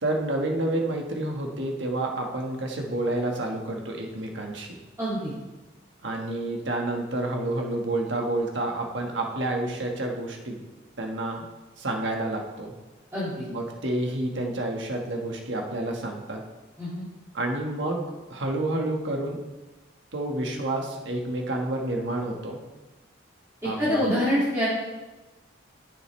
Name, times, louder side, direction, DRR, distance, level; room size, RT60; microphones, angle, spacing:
voice 1, 0.0-4.8 6.0-10.6 11.0-11.4 11.8-12.7 13.5-16.4 17.3-19.4 20.1-22.6 23.6-24.0, right 1 dB, 65° right, 1 dB, 1.4 m, -29 dB
voice 2, 5.0-5.3 13.1-13.4 16.8-17.1 23.8-24.7, equal, 15° right, -11 dB, 2.3 m, -25 dB
14.0 x 6.7 x 3.2 m, 1.1 s
head